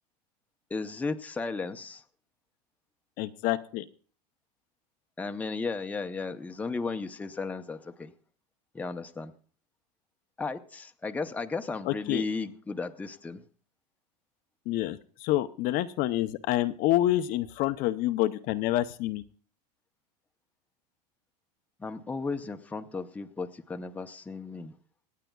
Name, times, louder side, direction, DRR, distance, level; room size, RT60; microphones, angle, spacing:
voice 1, 0.7-2.0 5.2-8.1 8.7-9.3 10.4-13.4 21.8-24.7, left 4 dB, 5° left, 7 dB, 0.7 m, -35 dB
voice 2, 3.2-3.9 11.8-12.2 14.7-19.2, left 15 dB, 45° left, 10 dB, 0.6 m, -27 dB
27.0 x 9.1 x 2.3 m, 0.42 s
supercardioid pair, 140°, 21 cm